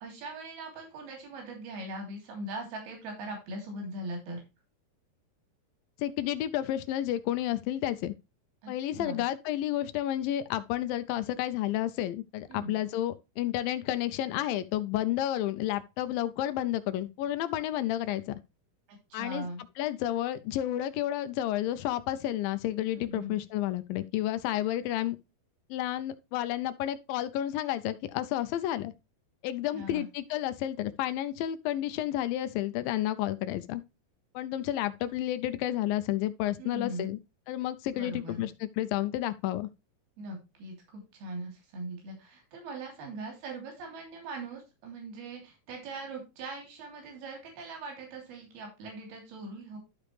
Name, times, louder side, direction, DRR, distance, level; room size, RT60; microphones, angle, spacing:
voice 1, 0.0-4.4 8.6-8.7 9.0-9.2 12.5-12.7 19.1-19.6 22.9-23.4 29.7-30.1 36.6-37.1 38.0-38.5 40.2-49.8, right 2 dB, 80° right, 4.8 m, -40 dB
voice 2, 6.0-8.1 8.7-18.4 19.1-19.5 19.8-25.2 25.7-28.9 29.4-33.8 34.3-37.2 37.5-39.7, left 13 dB, 80° left, 2.1 m, -31 dB
12.0 x 5.0 x 3.3 m
omnidirectional pair, 4.4 m